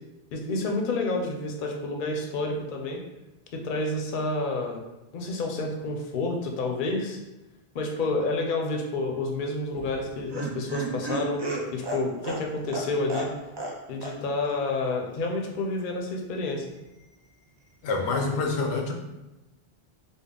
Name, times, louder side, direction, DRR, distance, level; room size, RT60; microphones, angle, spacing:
voice 1, 0.3-3.0 3.6-4.8 5.1-7.2 7.7-11.4 11.7-13.3 13.9-16.7, left 2 dB, 60° left, 2 dB, 0.7 m, -29 dB
Laughter, 9.7-13.8 14.0-14.1 14.4-14.5, right 2 dB, 45° right, 0.3 m, -33 dB
voice 2, 17.8-18.9, left 3 dB, 90° left, 2 dB, 0.9 m, -26 dB
3.6 x 2.1 x 3.6 m, 1.0 s
omnidirectional pair, 1.1 m